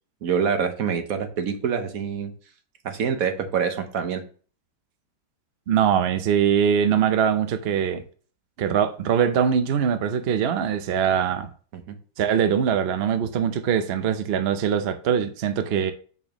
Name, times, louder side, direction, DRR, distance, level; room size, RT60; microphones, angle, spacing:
voice 1, 0.2-2.3 2.8-4.2 11.7-11.9, right 6 dB, 55° right, 1.2 m, -26 dB
voice 2, 5.7-8.0 8.6-11.5 12.2-15.9, right 8 dB, 85° right, 0.5 m, -22 dB
6.5 x 5.9 x 3.0 m
omnidirectional pair, 2.0 m